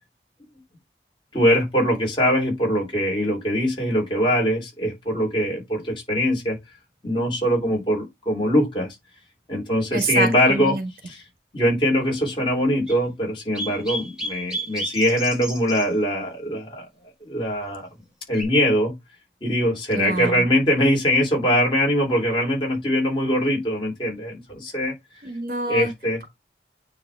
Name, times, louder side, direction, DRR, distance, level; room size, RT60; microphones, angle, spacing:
voice 1, 1.3-6.6 7.0-8.9 9.5-10.8 11.0-11.2 11.5-16.8 17.2-17.9 18.3-18.9 19.4-24.9 25.7-26.2, equal, 30° left, 3.4 m, -22 dB
voice 2, 9.9-10.8 19.9-20.4 25.2-25.9, right 2 dB, 55° right, 1.4 m, -26 dB
sound 1, 12.9-13.0 13.5-15.8 18.3-18.4, right 1 dB, 5° right, 2.0 m, -31 dB
9.4 x 3.2 x 3.5 m
head